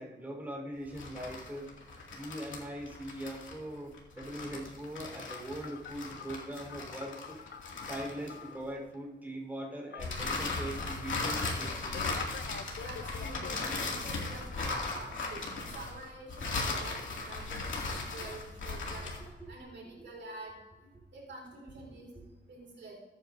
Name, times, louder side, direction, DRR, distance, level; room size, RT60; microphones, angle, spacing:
voice 1, 0.0-1.7 2.1-7.4 7.9-12.2 16.7-16.8 19.4-19.5, right 1 dB, 10° right, -2 dB, 4.2 m, -41 dB
sound 1, 0.9-8.7 10.0-19.3, left 3 dB, 85° left, 2.4 m, -37 dB
Telephone, 5.3-8.6 9.9-11.4 11.9-13.6, left 7 dB, 65° left, 0.7 m, -47 dB
voice 2, 12.8-20.6 21.1-22.1 22.5-22.9, right 2 dB, 75° right, -1 dB, 4.2 m, -47 dB
21.5 x 9.2 x 2.7 m, 1.2 s
cardioid pair, 95°, 19 cm